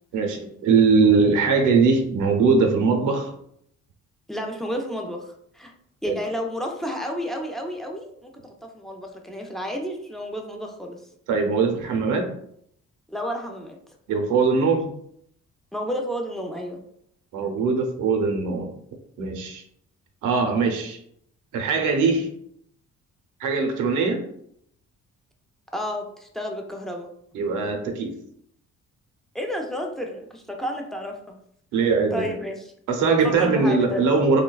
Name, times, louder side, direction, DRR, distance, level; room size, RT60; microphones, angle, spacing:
voice 1, 0.1-3.3 6.1-6.2 11.3-12.2 14.1-14.8 17.3-18.8 19.2-19.6 20.2-21.0 21.5-22.3 23.4-24.2 27.3-28.1 31.7-32.3 32.9-34.4, right 4 dB, 90° right, 4 dB, 0.6 m, -21 dB
voice 2, 4.3-5.7 6.0-11.0 13.1-13.8 15.7-16.8 25.7-27.1 29.3-31.4 32.1-32.6 33.2-34.1, equal, ahead, 2 dB, 0.4 m, -31 dB
3.1 x 2.1 x 2.3 m, 0.69 s
cardioid pair, 90°, 30 cm